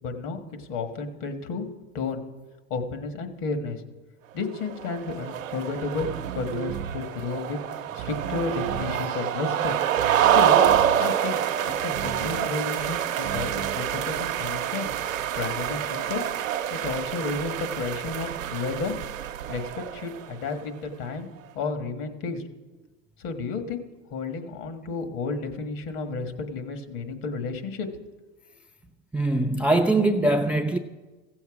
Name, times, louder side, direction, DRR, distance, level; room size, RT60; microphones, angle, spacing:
voice 1, 0.0-1.6 1.9-2.2 2.7-3.8 4.3-6.1 6.4-7.6 8.0-9.7 10.2-10.6 11.0-14.9 15.4-16.2 16.7-18.9 19.5-21.3 21.6-22.4 23.2-23.8 24.1-27.9, left 4 dB, 55° left, 1.6 m, -32 dB
sound 1, 4.7-20.3, right 10 dB, 85° right, 0.8 m, -27 dB
sound 2, 6.0-7.1 8.0-9.1 10.0-11.1 11.9-12.5 13.2-13.8, right 9 dB, 70° right, 0.9 m, -35 dB
voice 2, 29.1-30.8, right 2 dB, 5° right, 0.4 m, -22 dB
15.5 x 7.1 x 4.9 m
hypercardioid pair, 90°, 39 cm